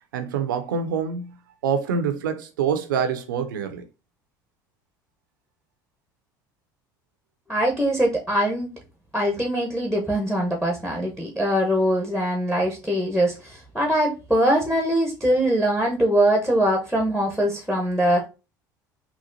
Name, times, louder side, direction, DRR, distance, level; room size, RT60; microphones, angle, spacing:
voice 1, 0.1-1.4 1.6-3.9, right 6 dB, 85° right, 0.5 m, -26 dB
voice 2, 7.5-8.7 9.1-18.2, right 1 dB, 5° left, 0.9 m, -22 dB
4.0 x 2.4 x 2.5 m
hypercardioid pair, 70°, 10 cm